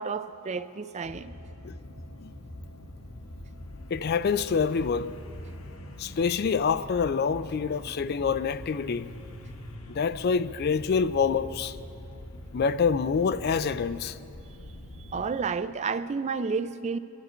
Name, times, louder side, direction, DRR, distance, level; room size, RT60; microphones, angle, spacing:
voice 1, 0.0-1.3 15.0-17.0, right 5 dB, 30° right, 0.4 m, -31 dB
sound 1, 1.0-15.5 15.8-15.9, left 1 dB, 70° left, 1.1 m, -43 dB
voice 2, 3.9-5.1 6.0-9.1 9.9-11.8 12.5-14.2, left 5 dB, 50° left, 0.4 m, -26 dB
24.0 x 12.0 x 4.4 m
head